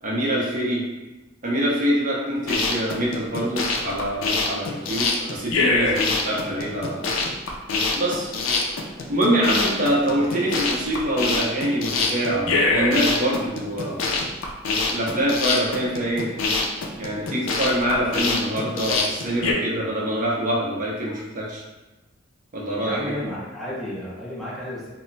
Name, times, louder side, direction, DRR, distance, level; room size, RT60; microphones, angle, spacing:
voice 1, 0.0-0.8 1.4-7.1 7.9-8.3 9.1-14.1 14.9-16.3 17.0-21.6 22.5-23.2, right 1 dB, 40° right, -4 dB, 0.5 m, -25 dB
sound 1, 2.4-19.5, left 3 dB, 75° left, 0.4 m, -24 dB
voice 2, 22.8-24.9, equal, ahead, -8 dB, 0.6 m, -32 dB
2.2 x 2.0 x 3.8 m, 1.1 s
head